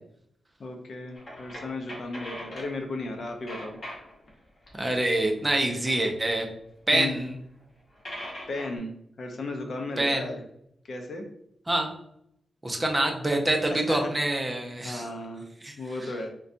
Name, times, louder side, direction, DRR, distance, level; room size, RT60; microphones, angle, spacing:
voice 1, 0.6-3.8 6.9-7.2 8.5-10.4 10.8-11.3 13.7-14.1 14.8-15.5 15.8-16.3, left 2 dB, 50° left, 4 dB, 0.5 m, -35 dB
sound 1, 1.2-2.8 3.1-4.3 4.6-6.5 7.1-7.2 7.6-7.7 7.9-8.8, equal, 35° left, 1.0 m, -42 dB
voice 2, 4.7-6.5 6.9-7.3 10.0-10.2 11.7-11.9 12.6-15.1 15.6-15.7 16.0-16.1, right 1 dB, 15° right, 2 dB, 0.6 m, -26 dB
4.0 x 2.2 x 2.5 m, 0.73 s
wide cardioid pair, 120°, 0 cm